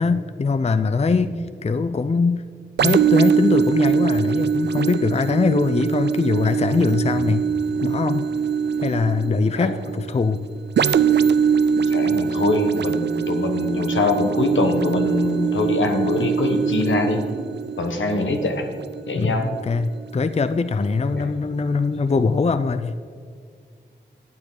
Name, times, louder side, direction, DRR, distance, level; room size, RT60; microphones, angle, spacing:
voice 1, 0.0-1.3 1.6-2.4 2.8-7.4 7.8-8.3 8.8-10.5 19.1-23.0, left 4 dB, 35° left, 11 dB, 0.5 m, -22 dB
sound 1, 2.8-20.3 20.9-21.0, right 7 dB, 60° right, 0.4 m, -23 dB
voice 2, 11.8-17.3 17.8-18.7 19.1-19.5 21.1-21.3, left 2 dB, 75° left, 4 dB, 1.3 m, -23 dB
12.0 x 9.1 x 3.9 m, 2.1 s
cardioid pair, 40°, 20 cm